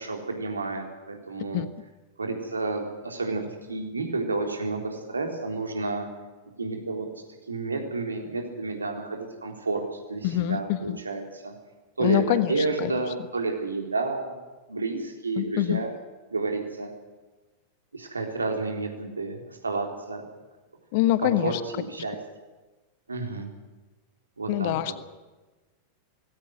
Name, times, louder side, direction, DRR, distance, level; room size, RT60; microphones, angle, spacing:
voice 1, 0.0-1.6 2.2-6.0 6.6-7.1 7.5-11.5 12.0-14.4 14.7-15.9 16.3-16.9 17.9-20.2 21.2-22.2 23.1-23.5 24.4-24.7, right 3 dB, 75° right, 3 dB, 3.8 m, -30 dB
voice 2, 10.2-11.0 12.0-13.0 15.4-15.8 20.9-21.6 24.5-25.0, left 14 dB, 50° left, 14 dB, 1.2 m, -25 dB
19.5 x 17.0 x 9.4 m, 1.2 s
figure-of-eight pair, 90°, 0 cm